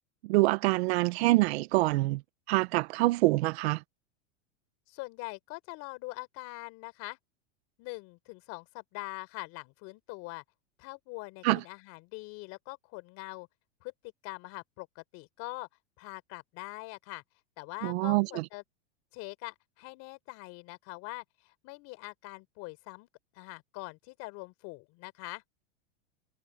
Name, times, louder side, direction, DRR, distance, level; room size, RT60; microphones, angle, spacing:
voice 1, 0.2-2.2 2.5-3.8 11.4-11.6 17.8-18.4, right 21 dB, 60° right, 1.0 m, -25 dB
voice 2, 4.9-7.2 7.8-10.4 10.8-13.5 13.8-15.7 16.0-17.2 17.6-18.6 19.1-23.1 23.3-25.4, left 24 dB, 45° left, 4.0 m, -43 dB
supercardioid pair, 145°, 36 cm